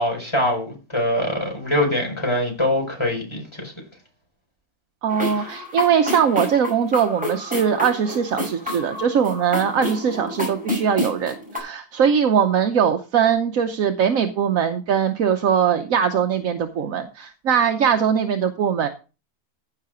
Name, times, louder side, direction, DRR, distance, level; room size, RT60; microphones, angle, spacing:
voice 1, 0.0-3.7 5.4-5.5, left 1 dB, 20° left, 4.6 m, -23 dB
voice 2, 5.0-18.9, right 7 dB, 70° right, 1.2 m, -21 dB
sound 1, 5.1-11.6, left 1 dB, 5° right, 5.8 m, -29 dB
15.0 x 5.7 x 5.0 m
omnidirectional pair, 1.5 m